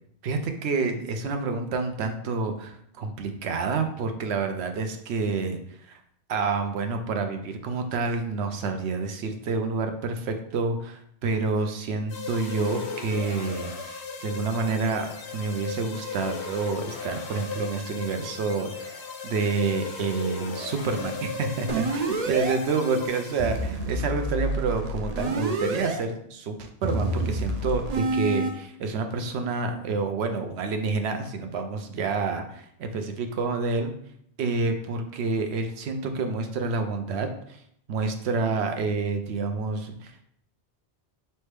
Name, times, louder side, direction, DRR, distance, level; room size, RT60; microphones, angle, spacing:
voice 1, 0.2-5.6 5.9-6.0 6.3-33.9 34.4-37.6 37.9-40.2, right 4 dB, 80° right, 6 dB, 0.8 m, -28 dB
sound 1, 12.1-23.9, left 5 dB, 85° left, 0.9 m, -37 dB
sound 2, 21.7-22.6 23.4-26.0 26.8-28.5, right 2 dB, 50° right, 0.5 m, -28 dB
4.2 x 3.3 x 3.3 m, 0.70 s
omnidirectional pair, 1.1 m